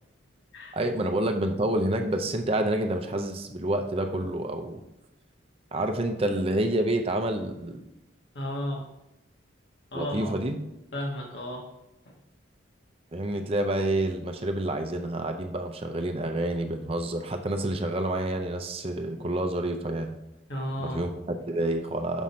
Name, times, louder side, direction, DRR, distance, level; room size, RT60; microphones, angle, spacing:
voice 1, 0.7-4.8 5.7-7.8 9.9-10.6 13.1-20.1 20.8-22.2, right 1 dB, 30° right, 5 dB, 0.6 m, -28 dB
voice 2, 8.3-8.8 9.9-10.4 10.9-11.7 20.5-21.0, equal, 60° left, -1 dB, 1.5 m, -33 dB
6.2 x 5.6 x 4.3 m, 0.88 s
head